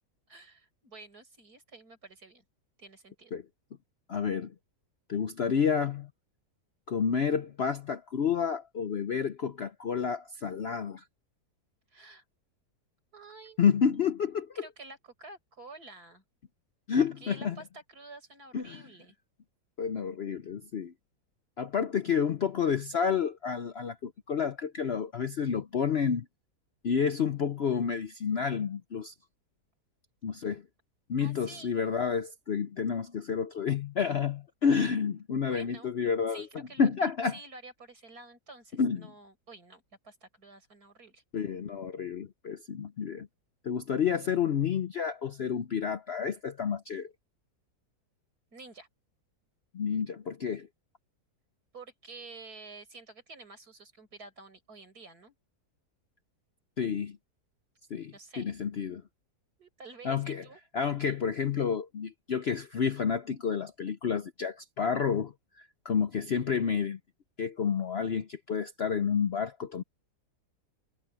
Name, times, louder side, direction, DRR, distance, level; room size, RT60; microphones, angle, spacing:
voice 1, 0.3-2.4 2.8-3.4 11.9-12.2 13.1-13.6 14.5-16.2 17.0-19.2 31.2-31.7 35.5-35.9 36.3-41.2 48.5-48.9 51.7-55.3 58.1-58.5 59.6-60.6, right 3 dB, 65° right, 5.9 m, -50 dB
voice 2, 4.1-4.5 5.1-6.1 6.9-11.0 13.6-14.6 16.9-17.6 18.5-18.8 19.8-20.9 21.6-26.3 26.8-29.1 30.2-30.6 31.1-36.5 36.8-37.4 38.8-39.1 41.3-43.3 43.6-47.1 49.7-50.7 56.8-57.2 57.9-59.0 60.0-60.4 60.7-67.0 67.4-69.8, left 6 dB, 55° left, 0.7 m, -30 dB
omnidirectional pair, 1.7 m